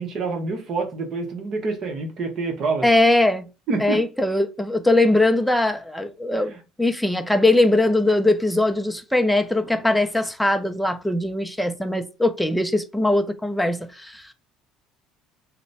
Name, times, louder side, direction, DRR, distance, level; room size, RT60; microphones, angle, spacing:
voice 1, 0.0-2.9 3.7-4.0 6.4-6.6, right 3 dB, 50° right, 1.0 m, -27 dB
voice 2, 2.8-3.5 3.8-6.5 6.8-14.3, left 2 dB, ahead, 0.5 m, -21 dB
3.0 x 2.1 x 4.0 m
supercardioid pair, 100°, 0 cm